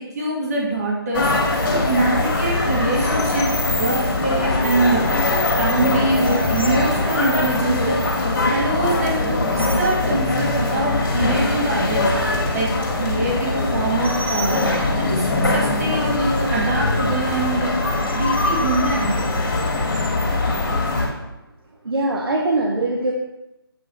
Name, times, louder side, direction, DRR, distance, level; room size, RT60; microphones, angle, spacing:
voice 1, 0.2-5.3 5.6-8.0 8.5-12.1 12.5-14.7 15.0-19.2, right 2 dB, 40° right, -3 dB, 2.1 m, -24 dB
sound 1, 1.1-21.1, left 2 dB, 55° left, 2.2 m, -21 dB
voice 2, 21.8-23.1, right 2 dB, 70° right, -1 dB, 1.2 m, -21 dB
8.4 x 5.1 x 4.1 m, 0.93 s
figure-of-eight pair, 155°, 13 cm